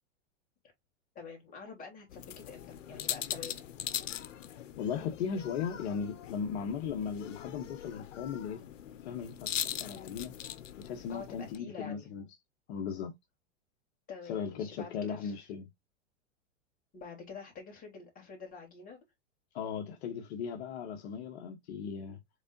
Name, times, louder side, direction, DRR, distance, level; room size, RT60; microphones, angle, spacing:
voice 1, 1.1-3.7 11.1-12.1 14.1-15.3 16.9-19.0, left 5 dB, 25° left, 2.8 m, -47 dB
sound 1, 2.1-11.6, left 10 dB, 90° left, 0.8 m, -41 dB
voice 2, 4.8-8.6 9.0-10.3 10.8-12.3 12.7-13.1 14.2-15.7 19.5-22.2, left 7 dB, 60° left, 1.0 m, -37 dB
5.2 x 3.7 x 2.5 m
hypercardioid pair, 125°, 36 cm